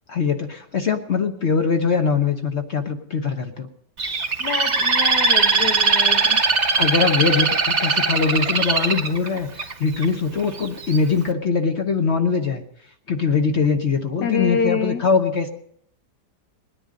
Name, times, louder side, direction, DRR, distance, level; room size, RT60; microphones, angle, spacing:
voice 1, 0.1-3.7 6.8-12.6 13.1-15.5, left 5 dB, 45° left, 5 dB, 1.1 m, -22 dB
Bird, 4.0-10.0 10.6-11.0, right 4 dB, 45° right, 0.5 m, -20 dB
voice 2, 4.4-6.4 14.2-15.1, left 5 dB, 75° left, 6 dB, 1.7 m, -26 dB
19.5 x 10.0 x 5.1 m, 0.69 s
omnidirectional pair, 1.8 m